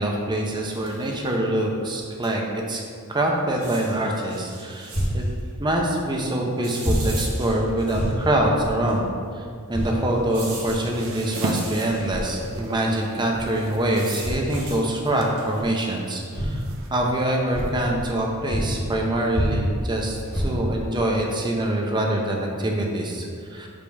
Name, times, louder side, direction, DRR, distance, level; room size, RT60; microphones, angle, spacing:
voice 1, 0.0-2.8 3.1-5.2 5.6-16.6 16.9-23.7, right 1 dB, 20° right, 0 dB, 0.7 m, -25 dB
sound 1, 0.6-1.2 2.2-2.3 2.6-2.7 3.5-5.3 6.6-8.2 8.9-9.0 10.3-12.3 13.5-14.8 15.4-15.7, right 3 dB, 85° right, 1.6 m, -39 dB
sound 2, 4.9-5.2 6.0-6.1 6.8-7.0 7.4-7.5 7.9-8.1 8.6-8.8 9.7-9.9 10.6-10.8 11.9-12.3 13.3-13.5 14.2-14.5 15.6-15.7 16.3-16.6 17.0-17.1 17.5-18.2 18.5-19.0 19.3-19.8 20.2-20.9 21.4-21.5 22.0-22.1, equal, 45° left, 1.6 m, -27 dB
sound 3, 9.8-17.7, right 1 dB, 65° right, 0.7 m, -37 dB
6.8 x 5.2 x 3.4 m, 2.2 s
head